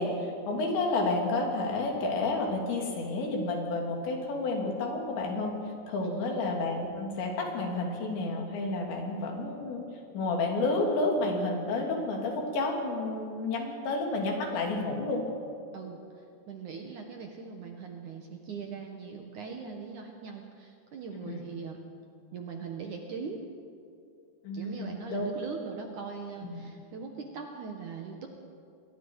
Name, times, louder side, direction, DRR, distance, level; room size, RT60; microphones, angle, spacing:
voice 1, 0.0-5.5 5.9-9.8 10.1-15.2 21.2-21.4 24.4-25.3 26.5-26.6, left 2 dB, 80° left, 1 dB, 5.1 m, -30 dB
voice 2, 6.0-6.4 15.7-21.8 22.3-23.4 24.5-28.3, right 5 dB, 60° right, 3 dB, 2.2 m, -41 dB
28.0 x 22.0 x 4.8 m, 2.4 s
omnidirectional pair, 5.1 m